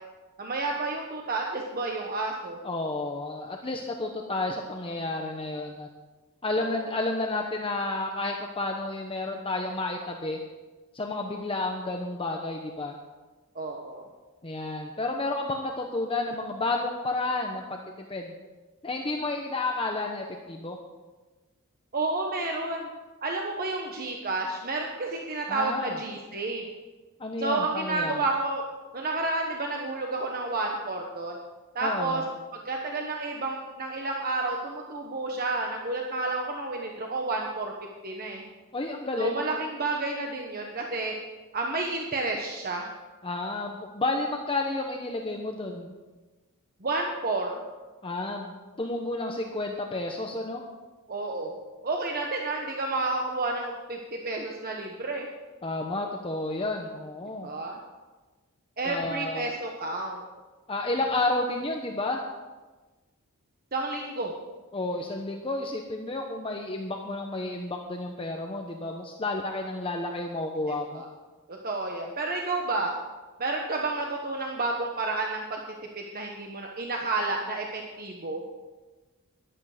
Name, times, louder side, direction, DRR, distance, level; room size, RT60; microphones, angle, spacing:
voice 1, 0.4-2.6 6.5-6.7 13.5-14.1 21.9-22.9 23.2-26.6 27.4-28.6 28.9-31.4 31.7-32.2 32.5-37.7 38.0-38.4 39.2-41.1 41.5-42.9 46.8-47.6 51.1-51.5 51.8-55.3 57.4-57.8 58.8-60.2 63.7-64.3 70.9-71.1 71.5-72.9 73.4-75.6 75.9-78.4, right 3 dB, 40° right, 1 dB, 1.2 m, -30 dB
voice 2, 2.6-5.9 6.4-10.4 10.9-12.9 14.4-17.8 18.1-18.3 18.8-20.8 25.5-26.0 27.2-28.1 31.8-32.2 38.7-39.5 43.2-45.9 48.0-50.6 55.6-57.5 58.8-59.5 60.7-62.2 64.7-71.0, left 2 dB, 25° left, 2 dB, 1.0 m, -31 dB
14.5 x 11.5 x 5.1 m, 1.2 s
head